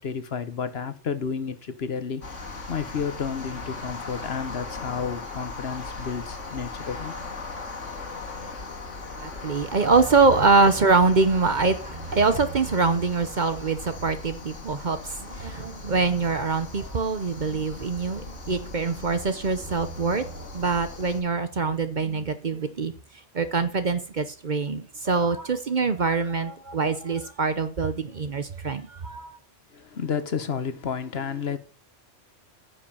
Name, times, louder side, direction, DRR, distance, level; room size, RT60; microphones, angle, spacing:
voice 1, 0.0-7.1 9.3-9.6 29.7-31.6, left 6 dB, 60° left, 1.2 m, -31 dB
sound 1, 2.2-21.2, left 3 dB, 85° left, 2.2 m, -39 dB
voice 2, 9.2-22.9 23.3-29.4, right 4 dB, 45° right, 0.8 m, -24 dB
9.7 x 5.5 x 6.9 m
omnidirectional pair, 1.2 m